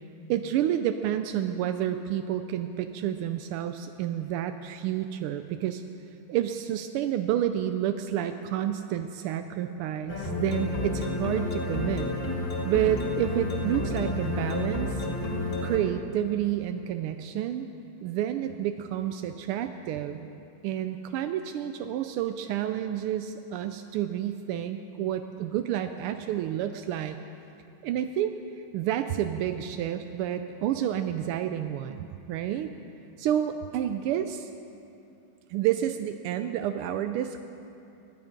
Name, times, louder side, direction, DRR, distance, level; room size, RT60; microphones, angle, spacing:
voice 1, 0.3-5.8 6.3-12.1 12.6-15.1 15.6-17.7 18.0-20.3 20.6-27.2 27.8-28.3 28.7-32.7 33.2-34.5 35.5-37.4, right 11 dB, 85° right, 8 dB, 1.5 m, -29 dB
sound 1, 10.1-15.8, left 2 dB, 25° left, 2.1 m, -30 dB
21.0 x 9.7 x 5.2 m, 2.7 s
omnidirectional pair, 2.4 m